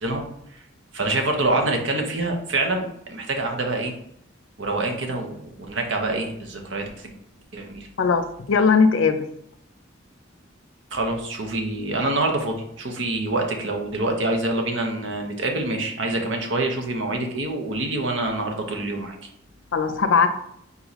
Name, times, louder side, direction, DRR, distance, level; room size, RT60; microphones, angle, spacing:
voice 1, 0.9-4.0 4.6-5.4 5.7-7.1 7.5-7.9 10.9-19.3, right 2 dB, 70° right, 3 dB, 0.8 m, -26 dB
voice 2, 8.0-9.3 19.7-20.3, left 5 dB, 85° left, 9 dB, 0.5 m, -19 dB
4.1 x 3.0 x 4.0 m, 0.73 s
head